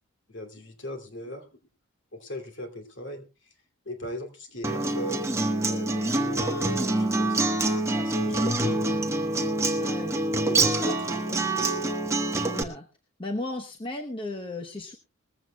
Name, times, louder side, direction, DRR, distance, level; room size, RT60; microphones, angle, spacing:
voice 1, 0.3-1.5 2.1-3.3 3.8-5.3 5.6-7.5 8.0-9.0 10.4-11.4, equal, 55° left, 5 dB, 2.8 m, -38 dB
Acoustic guitar, 4.6-12.6, right 2 dB, 10° right, 1.2 m, -26 dB
voice 2, 9.8-10.2 10.9-11.0 12.5-12.9 13.2-15.0, left 2 dB, 25° left, 3 dB, 0.9 m, -35 dB
20.5 x 15.0 x 2.3 m, 0.29 s
head